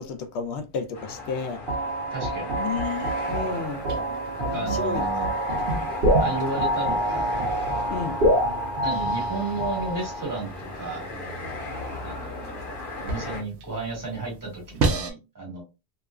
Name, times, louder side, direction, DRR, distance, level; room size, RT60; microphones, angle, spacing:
voice 1, 0.0-1.6 2.5-3.8 4.5-5.1 5.5-5.7 7.9-8.2, left 6 dB, 90° left, 0.9 m, -32 dB
sound 1, 0.9-13.4, left 1 dB, 55° left, 0.9 m, -36 dB
sound 2, 1.7-10.4, equal, 60° right, 1.0 m, -26 dB
voice 2, 2.1-2.6 4.4-5.3 6.1-7.3 8.8-11.0 12.0-12.7 13.0-15.6, right 3 dB, 20° right, 1.4 m, -33 dB
sound 3, 2.8-15.1, right 3 dB, 85° right, 0.9 m, -35 dB
2.7 x 2.3 x 2.2 m
omnidirectional pair, 1.1 m